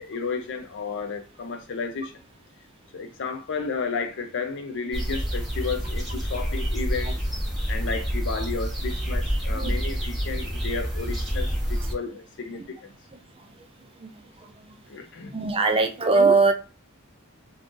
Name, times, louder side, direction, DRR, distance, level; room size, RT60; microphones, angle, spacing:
voice 1, 0.0-2.1 2.9-7.2 7.7-12.9 14.9-15.4, left 4 dB, 55° left, 0.5 m, -32 dB
sound 1, 4.9-11.9, equal, ahead, 1.1 m, -28 dB
voice 2, 15.3-16.5, right 4 dB, 25° right, 0.4 m, -20 dB
2.5 x 2.5 x 3.7 m
head